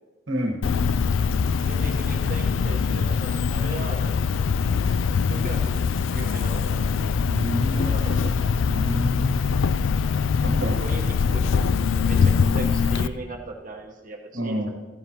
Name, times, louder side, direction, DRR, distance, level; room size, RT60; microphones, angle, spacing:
voice 1, 0.3-0.6 7.3-7.9 8.7-9.4 10.4-10.8 14.3-14.7, equal, 75° right, 3 dB, 1.4 m, -29 dB
Cricket, 0.6-13.1, left 5 dB, 85° left, 0.4 m, -23 dB
voice 2, 1.5-4.3 5.1-6.9 7.7-8.3 10.6-11.7 11.9-14.7, right 3 dB, 45° right, 1 dB, 1.2 m, -38 dB
14.5 x 14.0 x 3.0 m, 1.3 s
head